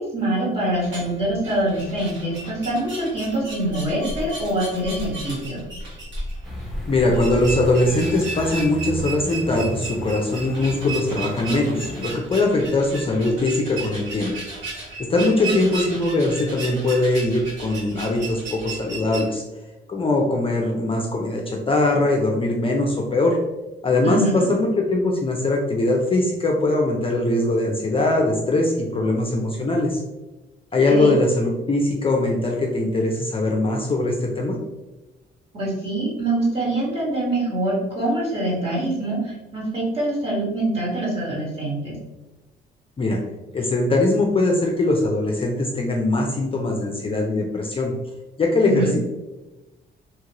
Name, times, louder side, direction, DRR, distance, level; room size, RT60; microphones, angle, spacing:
voice 1, 0.0-5.6 15.4-15.5 24.0-24.5 30.9-31.1 35.5-41.9 48.6-48.9, right 1 dB, 30° right, -5 dB, 1.5 m, -24 dB
sound 1, 0.7-19.2, right 2 dB, 70° right, 1.4 m, -34 dB
sound 2, 6.4-12.1, right 1 dB, ahead, 0.8 m, -35 dB
voice 2, 6.9-14.3 15.0-19.4 19.9-23.4 23.8-30.0 30.7-34.6 43.0-43.2 43.5-47.9 48.4-49.0, left 2 dB, 25° left, 0 dB, 0.5 m, -21 dB
2.9 x 2.4 x 2.9 m, 1.1 s
cardioid pair, 90°, 20 cm